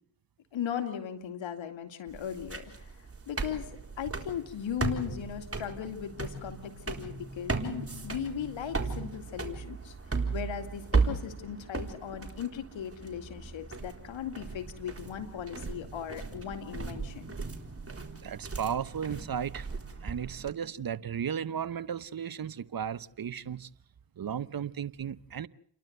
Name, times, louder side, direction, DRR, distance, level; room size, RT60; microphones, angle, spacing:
voice 1, 0.5-2.9 3.3-3.7 4.0-10.0 10.3-17.4, left 8 dB, 80° left, 2.4 m, -38 dB
sound 1, 2.1-20.5, right 4 dB, 30° right, 4.0 m, -36 dB
voice 2, 18.2-19.7 20.0-23.7 24.2-25.5, right 8 dB, 50° right, 0.9 m, -35 dB
29.5 x 12.0 x 7.9 m
supercardioid pair, 40°, 45 cm